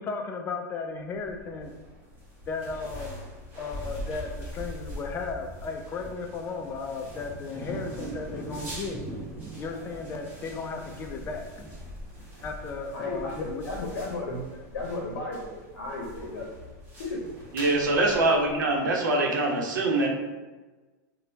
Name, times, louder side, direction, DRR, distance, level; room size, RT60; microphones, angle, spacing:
voice 1, 0.0-1.7 2.5-3.2 3.6-9.0 9.5-11.4 12.4-13.7 17.9-18.2, left 4 dB, 20° left, 3 dB, 0.4 m, -35 dB
sound 1, 1.1-18.9, equal, 20° right, 1.3 m, -43 dB
sound 2, 6.5-14.0, right 2 dB, 5° right, 1.0 m, -43 dB
voice 2, 12.9-14.4 14.7-16.5 17.0-17.2, left 2 dB, 70° left, -2 dB, 0.7 m, -34 dB
voice 3, 17.5-20.1, right 2 dB, 85° right, -1 dB, 0.8 m, -24 dB
4.2 x 2.2 x 2.7 m, 1.2 s
supercardioid pair, 135°, 10 cm